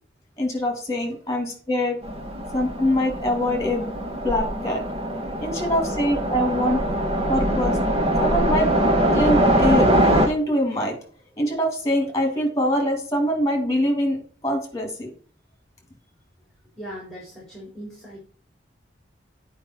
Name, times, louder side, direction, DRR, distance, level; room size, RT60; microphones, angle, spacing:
voice 1, 0.4-2.0 2.5-3.9 4.2-4.8 5.4-6.8 7.3-7.8 8.2-8.7 9.1-9.9 10.2-11.0 11.4-14.2 14.4-15.1, equal, 20° left, 2 dB, 2.8 m, -23 dB
Train, 2.0-10.3, right 1 dB, 35° right, 1.2 m, -22 dB
voice 2, 16.8-18.2, equal, ahead, -6 dB, 4.1 m, -39 dB
9.4 x 5.2 x 4.6 m, 0.41 s
head